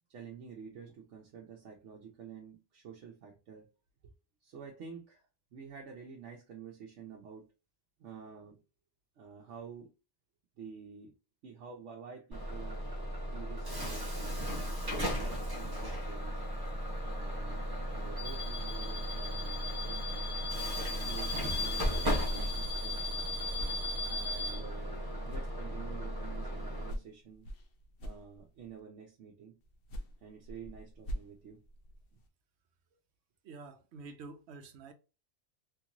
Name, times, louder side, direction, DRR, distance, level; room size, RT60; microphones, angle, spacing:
voice 1, 0.1-3.7 4.0-4.1 4.4-7.5 8.0-8.6 9.2-9.9 10.6-11.1 11.4-12.9 13.3-14.5 14.9-16.4 17.1-20.0 20.9-23.2 24.1-25.0 25.3-27.5 28.0-29.6 30.2-31.6, right 6 dB, 90° right, 1.0 m, -49 dB
Bus / Alarm, 12.3-26.9, left 1 dB, 20° right, 0.8 m, -35 dB
sound 1, 23.5-25.0 25.3-28.8 29.6-32.3, equal, 60° left, 0.7 m, -46 dB
voice 2, 33.4-34.9, right 4 dB, 70° right, 0.9 m, -48 dB
3.3 x 2.9 x 2.5 m
omnidirectional pair, 1.2 m